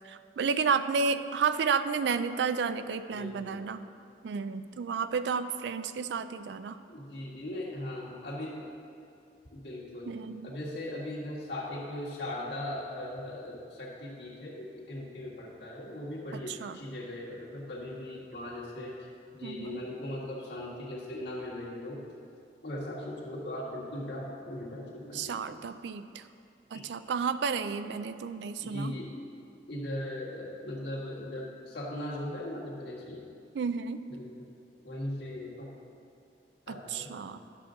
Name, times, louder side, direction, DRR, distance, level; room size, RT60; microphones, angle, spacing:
voice 1, 0.0-3.8 4.2-6.8 10.1-10.5 16.5-16.8 19.4-19.8 25.1-26.3 26.7-29.0 33.5-34.0 36.7-37.4, right 5 dB, 75° right, 12 dB, 0.3 m, -31 dB
voice 2, 3.1-3.7 6.9-8.7 9.5-10.1 10.4-19.1 19.3-22.0 22.6-25.6 26.7-26.8 28.6-29.1 29.7-33.2 34.1-34.5 34.8-35.7 36.7-37.4, left 1 dB, 65° left, -4 dB, 1.7 m, -39 dB
10.0 x 6.8 x 3.9 m, 2.5 s
head